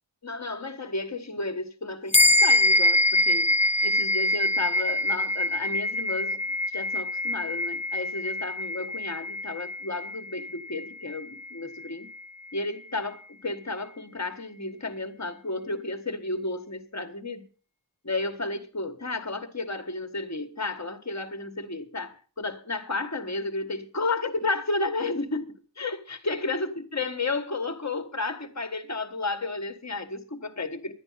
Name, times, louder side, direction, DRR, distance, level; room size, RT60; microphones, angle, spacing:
voice 1, 0.2-3.5 3.8-6.4 6.7-12.1 12.5-17.5 18.0-30.9, left 3 dB, 40° left, 1.4 m, -32 dB
sound 1, 2.1-11.9, left 1 dB, 15° left, 0.5 m, -25 dB
11.0 x 10.5 x 5.6 m
wide cardioid pair, 55°, 43 cm